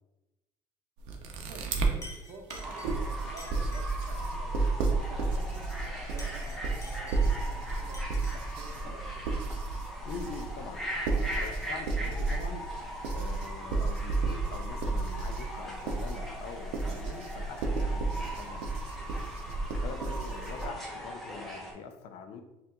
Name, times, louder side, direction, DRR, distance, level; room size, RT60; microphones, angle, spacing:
sound 1, 1.0-1.9 2.5-20.7, right 3 dB, 80° right, 0.6 m, -32 dB
Chink clink, 1.5-1.7 2.0-4.2 6.0-7.5 7.9-8.5, left 1 dB, 30° left, 0.9 m, -50 dB
voice 1, 1.5-4.6 4.9-8.0 8.3-9.4 20.0-20.2, right 3 dB, 55° right, 0 dB, 1.0 m, -49 dB
Fowl / Bird, 2.6-21.7, equal, 5° left, 0.9 m, -41 dB
voice 2, 10.1-10.8 11.2-12.7 13.1-18.8 19.6-22.4, left 5 dB, 70° left, 7 dB, 0.5 m, -44 dB
5.6 x 2.5 x 2.3 m, 0.97 s
supercardioid pair, 105°, 11 cm